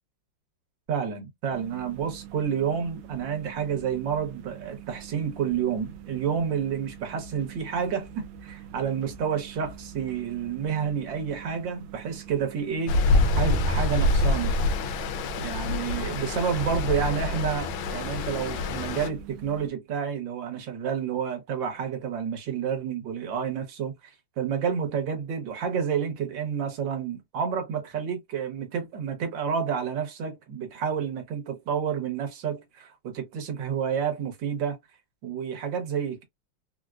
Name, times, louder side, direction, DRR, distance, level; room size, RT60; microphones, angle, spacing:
voice 1, 0.9-14.5 15.4-34.8 35.2-36.2, right 7 dB, 70° right, 1.7 m, -30 dB
sound 1, 1.5-19.7, right 8 dB, 90° right, 1.4 m, -45 dB
Stream, 12.9-19.1, left 2 dB, 80° left, 1.4 m, -26 dB
4.3 x 2.2 x 2.3 m
omnidirectional pair, 2.1 m